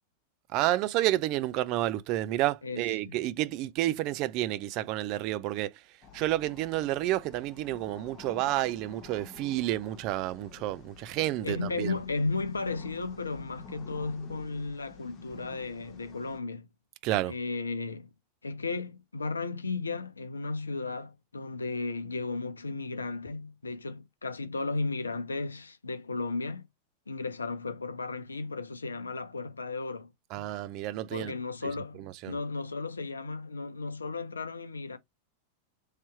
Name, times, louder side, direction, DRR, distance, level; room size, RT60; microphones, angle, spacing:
voice 1, 0.5-5.7 6.1-11.9 17.0-17.3 30.3-31.3 32.2-32.4, right 15 dB, 40° right, 0.4 m, -30 dB
voice 2, 2.6-3.2 11.4-16.7 17.3-18.1 18.4-26.7 27.1-30.1 31.1-35.0, left 3 dB, 75° left, 0.6 m, -34 dB
sound 1, 6.0-16.4, left 4 dB, 35° left, 1.0 m, -50 dB
3.2 x 2.9 x 4.4 m
figure-of-eight pair, 90°, 0 cm